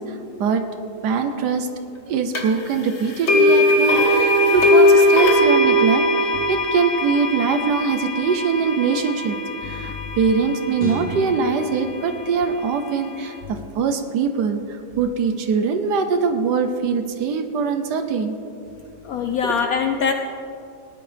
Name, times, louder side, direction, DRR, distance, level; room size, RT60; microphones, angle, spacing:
voice 1, 0.0-9.4 9.6-18.4 19.4-19.5, right 5 dB, 70° right, 7 dB, 1.2 m, -22 dB
sound 1, 2.3-2.4 3.3-11.3, left 1 dB, 40° left, 1.5 m, -19 dB
voice 2, 9.8-10.2 19.0-20.1, left 6 dB, 70° left, 5 dB, 0.8 m, -23 dB
sound 2, 10.8-13.1, left 2 dB, 50° right, 3.0 m, -34 dB
18.5 x 10.5 x 3.4 m, 2.7 s
omnidirectional pair, 2.1 m